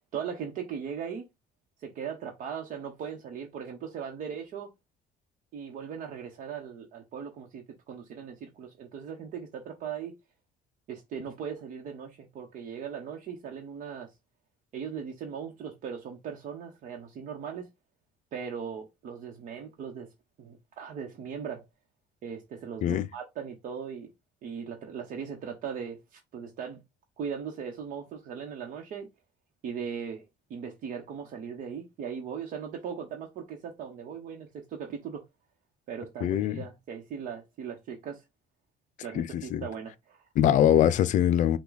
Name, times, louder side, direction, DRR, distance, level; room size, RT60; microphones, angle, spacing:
voice 1, 0.1-1.3 1.8-4.7 5.5-10.1 10.9-14.1 14.7-17.7 18.3-20.1 20.4-21.7 22.2-24.1 24.4-26.8 27.2-29.1 29.6-30.2 30.5-35.2 35.9-38.2 39.0-40.2, right 7 dB, 60° right, 1.0 m, -38 dB
voice 2, 36.2-36.6 39.1-39.6 40.4-41.6, left 10 dB, 55° left, 0.5 m, -23 dB
5.8 x 2.3 x 3.9 m
cardioid pair, 150°, 15 cm